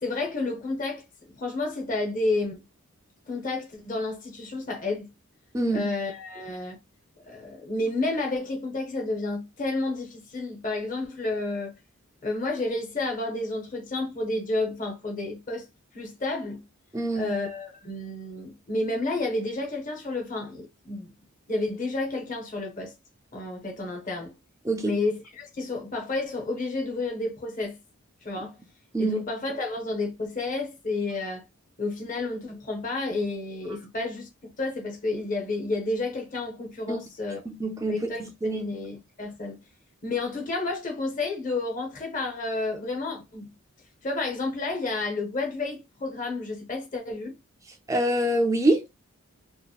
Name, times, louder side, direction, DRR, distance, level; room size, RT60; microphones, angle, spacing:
voice 1, 0.0-1.0 1.3-2.6 3.3-5.1 5.7-6.8 7.2-11.7 12.2-15.7 15.9-16.6 17.1-21.1 21.5-22.9 23.3-24.3 24.8-27.8 28.2-28.6 29.0-31.4 31.8-37.4 37.9-39.6 40.0-43.5 44.0-47.4, left 2 dB, 35° left, 0.7 m, -30 dB
voice 2, 5.5-5.9 16.9-17.3 24.7-25.0 28.9-29.2 36.9-37.0 37.5-38.6 47.9-48.9, right 1 dB, 15° right, 0.4 m, -25 dB
2.8 x 2.1 x 2.3 m
head